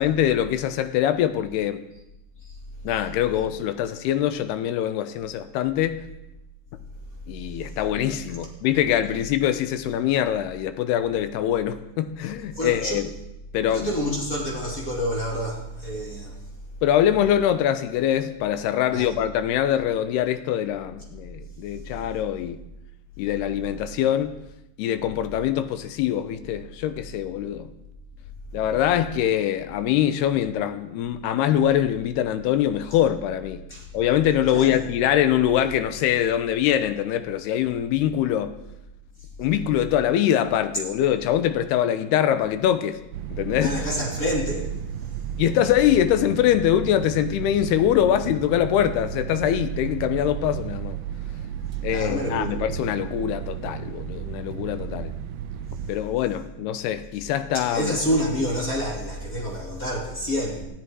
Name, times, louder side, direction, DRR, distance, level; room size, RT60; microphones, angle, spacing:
voice 1, 0.0-1.8 2.8-6.0 7.3-13.1 13.5-13.9 16.8-22.6 23.2-24.4 24.8-27.7 28.5-33.6 33.9-38.6 39.4-43.8 45.4-51.0 51.8-55.1 55.9-57.9, left 11 dB, 75° left, 10 dB, 2.8 m, -23 dB
voice 2, 12.5-13.0 13.7-16.4 18.9-19.0 33.7-33.8 34.5-34.7 43.6-44.7 51.9-52.5 57.5-60.6, equal, 25° left, -2 dB, 2.8 m, -28 dB
sound 1, 43.1-55.9, right 12 dB, 75° right, 2.3 m, -34 dB
20.0 x 14.0 x 4.7 m, 0.85 s
omnidirectional pair, 5.1 m